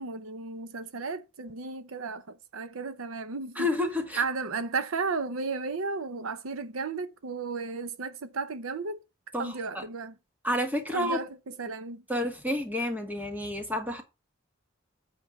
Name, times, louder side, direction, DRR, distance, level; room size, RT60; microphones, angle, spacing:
voice 1, 0.0-3.7 4.2-9.0 9.4-10.1 10.9-12.0, right 4 dB, 80° right, 0.8 m, -34 dB
voice 2, 3.5-4.2 9.3-9.8 10.4-11.2 12.1-14.0, left 1 dB, 10° right, 1.6 m, -30 dB
7.8 x 4.5 x 5.7 m
head